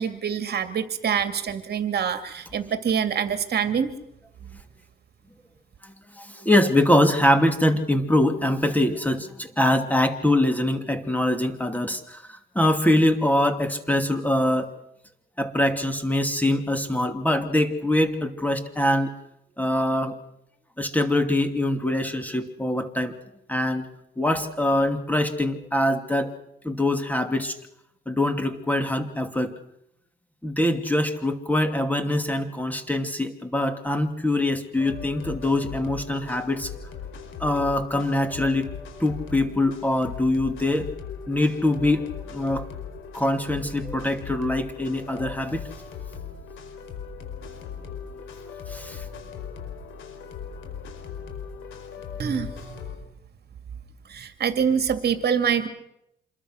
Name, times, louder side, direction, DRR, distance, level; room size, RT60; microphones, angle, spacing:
voice 1, 0.0-3.9 52.2-52.8 54.1-55.7, right 7 dB, 55° right, 8 dB, 2.4 m, -25 dB
voice 2, 5.8-14.7 15.4-19.1 19.6-20.2 20.8-23.1 23.5-23.9 24.2-26.3 26.6-27.6 28.1-29.5 30.4-36.7 37.4-38.7 39.0-40.9 41.3-42.7 43.1-45.7 48.7-49.0, left 1 dB, 10° left, 7 dB, 2.7 m, -23 dB
sound 1, 34.8-53.0, left 7 dB, 80° left, 4.8 m, -39 dB
27.0 x 21.5 x 6.4 m, 0.79 s
cardioid pair, 90°, 20 cm